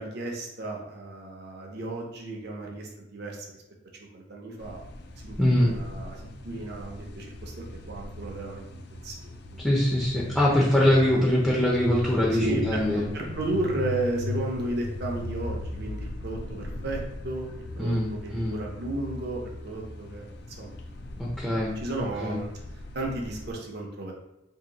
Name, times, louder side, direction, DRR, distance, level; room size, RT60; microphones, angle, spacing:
voice 1, 0.0-3.5 4.0-4.8 5.2-8.6 9.0-9.6 10.8-11.3 12.4-12.8 13.1-17.5 17.8-20.3 20.6-20.7 21.8-22.5 22.9-24.1, right 2 dB, 60° right, 0 dB, 0.7 m, -33 dB
sound 1, 4.6-23.5, left 2 dB, 60° left, 0.4 m, -38 dB
voice 2, 5.4-5.7 9.6-13.1 17.8-18.5 21.2-21.7 22.2-22.4, left 1 dB, 5° left, -5 dB, 0.5 m, -23 dB
2.8 x 2.7 x 4.0 m, 0.92 s
head